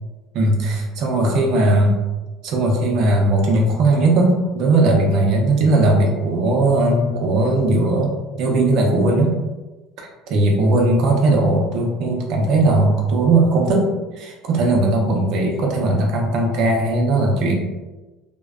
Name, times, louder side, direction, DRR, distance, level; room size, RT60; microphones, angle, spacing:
voice 1, 0.3-2.0 2.4-9.3 10.0-13.9 14.2-17.5, right 2 dB, 55° right, 0 dB, 0.5 m, -18 dB
2.5 x 2.1 x 2.3 m, 1.1 s
cardioid pair, 150°, 0 cm